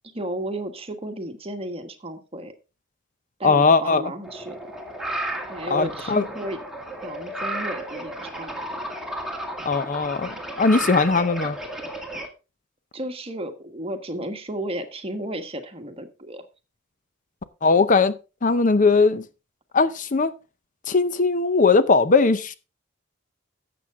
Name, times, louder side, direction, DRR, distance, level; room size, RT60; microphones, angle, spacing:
voice 1, 0.1-2.5 3.4-4.8 5.5-6.6 7.0-8.9 12.9-16.5, right 1 dB, 30° right, 1.4 m, -33 dB
voice 2, 3.4-4.0 5.7-6.3 9.7-11.6 17.6-18.1 18.4-19.2 19.7-20.3 20.9-22.5, left 4 dB, 40° left, 0.6 m, -19 dB
sound 1, 4.2-12.3, right 1 dB, ahead, 2.0 m, -33 dB
12.0 x 7.9 x 3.6 m
head